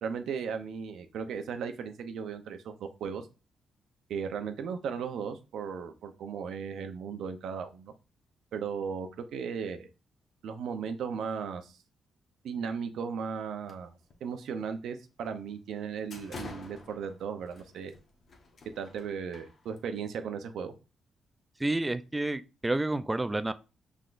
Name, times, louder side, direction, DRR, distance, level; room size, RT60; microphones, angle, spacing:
voice 1, 0.0-3.3 4.1-7.9 8.5-9.9 10.4-11.8 12.4-13.9 14.2-17.9 18.8-20.7, right 6 dB, 80° right, 0.7 m, -36 dB
sound 1, 13.7-14.1 14.5-14.7 15.3-15.4 15.8-20.0, left 3 dB, 55° left, 1.0 m, -48 dB
voice 2, 21.6-23.5, right 2 dB, 15° right, 0.3 m, -29 dB
5.8 x 3.5 x 2.5 m
cardioid pair, 95°, 0 cm